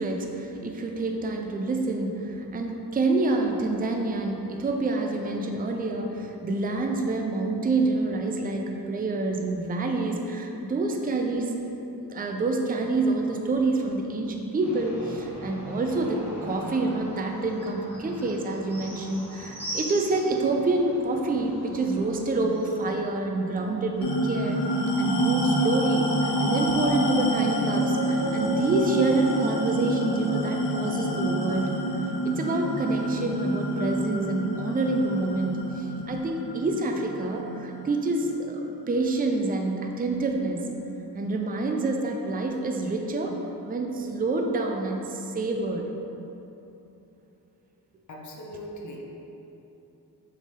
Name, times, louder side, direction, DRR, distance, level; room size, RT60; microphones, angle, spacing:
voice 1, 0.0-11.7 12.0-24.6 25.0-31.7 32.2-40.6 41.1-43.4 43.6-45.8, right 2 dB, 25° right, 2 dB, 0.4 m, -27 dB
sound 1, 14.6-22.8, equal, 5° right, 1.4 m, -40 dB
sound 2, 24.0-38.8, equal, 85° left, 0.7 m, -27 dB
voice 2, 48.1-49.0, equal, 45° left, -2 dB, 0.7 m, -40 dB
3.9 x 3.5 x 3.2 m, 3.0 s
wide cardioid pair, 65°, 40 cm